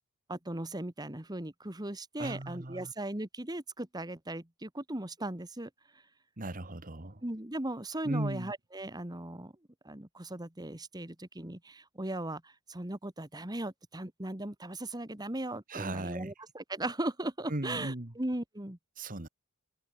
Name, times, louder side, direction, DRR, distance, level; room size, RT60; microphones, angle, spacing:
voice 1, 0.3-6.0 7.2-9.5 9.8-18.8, right 1 dB, 20° right, 1.8 m, -38 dB
voice 2, 2.2-2.9 6.4-7.2 8.0-8.5 15.7-16.3 17.5-18.1 19.0-19.3, right 1 dB, 40° right, 1.8 m, -37 dB
head